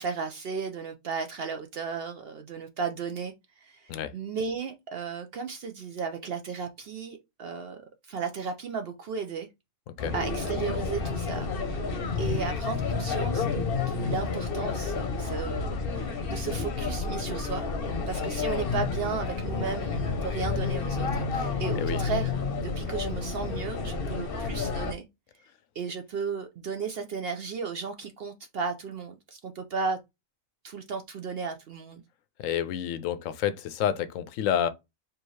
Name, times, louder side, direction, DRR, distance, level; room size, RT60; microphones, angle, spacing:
voice 1, 0.0-7.8 8.0-9.5 10.1-11.9 12.2-17.7 18.1-22.3 22.6-25.0 25.8-30.0 30.6-32.0, right 5 dB, 60° right, 0.6 m, -34 dB
sound 1, 10.0-24.9, left 4 dB, 50° left, 0.8 m, -30 dB
voice 2, 32.4-34.7, left 9 dB, 75° left, 0.9 m, -29 dB
4.6 x 2.7 x 3.1 m
omnidirectional pair, 1.4 m